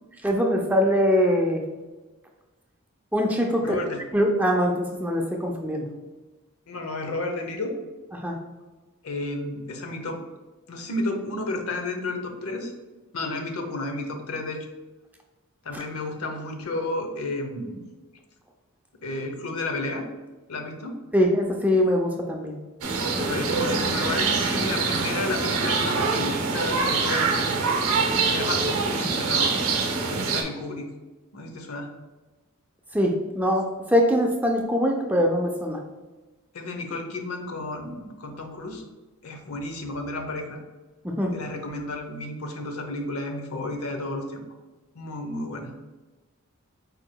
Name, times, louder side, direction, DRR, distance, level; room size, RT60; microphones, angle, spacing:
voice 1, 0.2-1.6 3.1-3.8 4.1-5.8 8.1-8.4 21.1-22.5 32.9-35.8 41.0-41.3, equal, 5° right, 1 dB, 0.4 m, -23 dB
voice 2, 3.6-4.0 6.7-7.7 9.0-10.2 10.7-12.7 13.1-14.7 15.6-17.8 19.0-20.1 20.5-21.0 23.2-27.5 28.2-29.7 30.1-30.9 31.3-31.9 36.5-38.8 39.2-40.6 41.3-44.4 44.9-45.7, left 2 dB, 80° left, 4 dB, 0.8 m, -32 dB
sound 1, 22.8-30.4, right 4 dB, 85° right, 0.9 m, -24 dB
4.8 x 4.7 x 2.2 m, 1.2 s
head